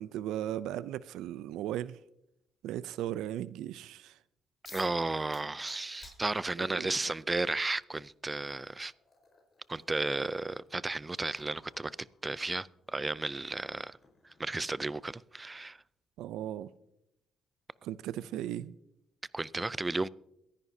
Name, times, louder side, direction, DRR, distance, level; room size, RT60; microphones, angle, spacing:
voice 1, 0.0-2.0 2.6-4.2 6.7-6.9 16.2-16.7 17.8-18.7, right 12 dB, 90° right, 0.4 m, -37 dB
sound 1, 4.6-5.0 5.3-6.9 8.0-8.1 8.6-15.3, left 4 dB, 40° left, 4.4 m, -59 dB
voice 2, 4.7-8.9 9.7-11.9 12.2-14.0 14.4-15.8 19.3-20.1, right 2 dB, 20° right, 0.4 m, -33 dB
23.0 x 10.5 x 2.7 m
cardioid pair, 90°, 0 cm